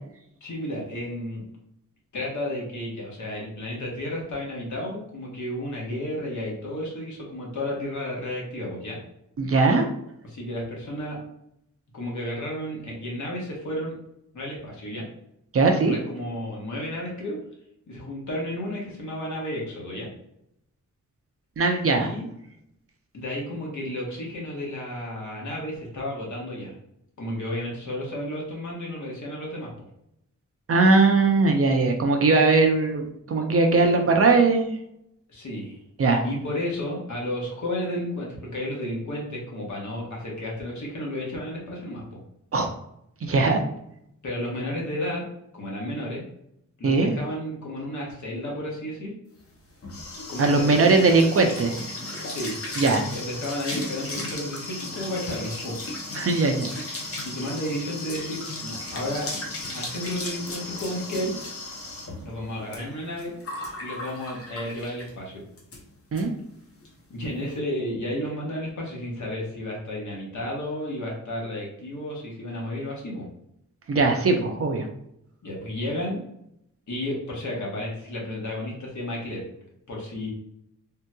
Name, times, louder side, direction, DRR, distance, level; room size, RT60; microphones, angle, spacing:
voice 1, 0.4-1.4 2.1-9.0 10.2-11.2 11.9-13.9 14.3-15.1 15.8-17.4 17.9-20.1 21.9-22.3 23.1-26.7 27.2-29.9 35.3-35.8 36.2-42.2 44.2-45.3 45.5-46.2 46.8-49.1 50.3-51.0 52.2-52.6 53.1-55.8 57.2-59.3 59.7-61.3 62.2-63.3 63.8-65.4 67.1-73.3 75.4-76.2 76.9-79.4 79.9-80.3, left 1 dB, 65° left, -3 dB, 1.1 m, -32 dB
voice 2, 9.4-9.9 15.5-16.0 21.6-22.1 30.7-34.7 36.0-36.2 42.5-42.7 43.2-43.6 46.8-47.1 50.4-51.8 52.8-53.1 56.1-56.7 57.0-57.2 66.1-66.3 73.9-74.9, right 3 dB, 45° right, 3 dB, 0.5 m, -20 dB
sound 1, 49.4-65.2 65.6-65.8 66.2-66.3 66.5-66.9, left 2 dB, 45° left, 0.6 m, -35 dB
3.6 x 2.8 x 2.2 m, 0.78 s
wide cardioid pair, 165°, 32 cm